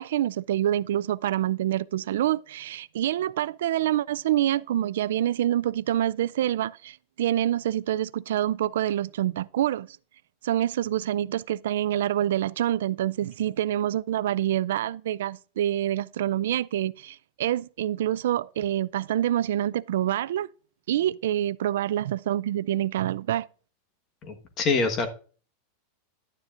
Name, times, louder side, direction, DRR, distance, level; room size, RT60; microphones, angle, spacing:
voice 1, 0.0-9.9 10.4-20.5 20.9-23.5, right 12 dB, 80° right, 0.3 m, -26 dB
voice 2, 24.2-25.1, left 4 dB, 25° left, 1.3 m, -25 dB
11.0 x 9.8 x 2.5 m
supercardioid pair, 175°, 0 cm